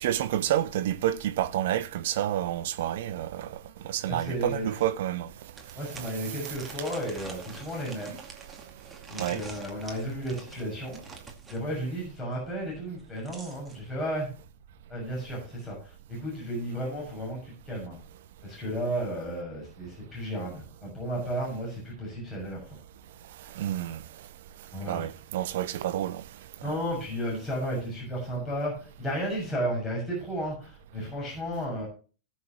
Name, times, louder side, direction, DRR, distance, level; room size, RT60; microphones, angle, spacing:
voice 1, 0.0-3.5 3.8-5.3 6.0-6.1 9.2-9.4 23.6-24.0 24.8-26.2, right 12 dB, 55° right, 0.9 m, -29 dB
voice 2, 4.1-4.7 5.7-8.2 9.1-11.0 11.5-14.3 14.9-18.0 18.4-22.8 24.7-25.0 26.6-31.9, equal, 15° left, 6.6 m, -33 dB
sound 1, 5.6-11.6 12.9-13.8, right 3 dB, 15° right, 2.3 m, -46 dB
19.0 x 6.4 x 3.0 m
figure-of-eight pair, 90°, 0 cm